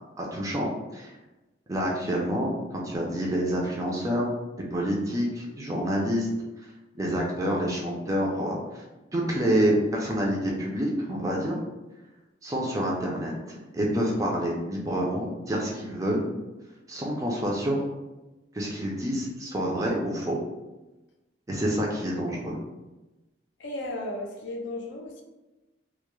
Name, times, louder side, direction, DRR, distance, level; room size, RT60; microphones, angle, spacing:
voice 1, 0.2-1.1 1.7-4.3 4.7-6.3 6.9-8.8 9.1-11.6 12.4-13.3 13.7-16.3 16.9-17.8 18.5-20.4 21.5-22.6, equal, 15° right, -2 dB, 0.3 m, -27 dB
voice 2, 23.6-25.2, left 1 dB, 70° left, 1 dB, 0.4 m, -35 dB
2.2 x 2.0 x 3.0 m, 1.1 s
head